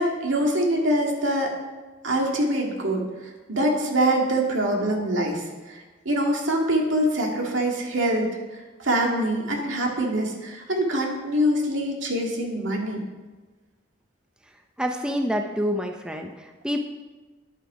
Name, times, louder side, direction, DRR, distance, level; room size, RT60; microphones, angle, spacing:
voice 1, 0.0-1.5 2.0-5.8 6.1-8.3 8.8-13.0, right 1 dB, 80° right, 0 dB, 2.2 m, -24 dB
voice 2, 14.8-16.8, equal, 5° right, 3 dB, 0.7 m, -27 dB
10.5 x 8.8 x 4.9 m, 1.3 s
head